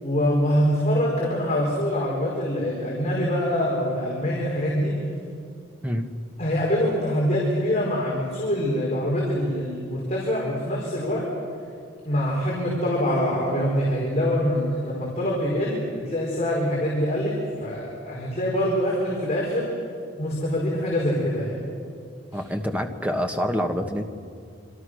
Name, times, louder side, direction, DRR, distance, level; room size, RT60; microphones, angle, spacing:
voice 1, 0.0-5.0 6.4-11.3 12.0-19.7 20.2-21.6, equal, 35° left, -5 dB, 5.0 m, -24 dB
voice 2, 22.3-24.0, equal, 5° right, 4 dB, 1.4 m, -26 dB
27.0 x 26.5 x 6.5 m, 2.3 s
head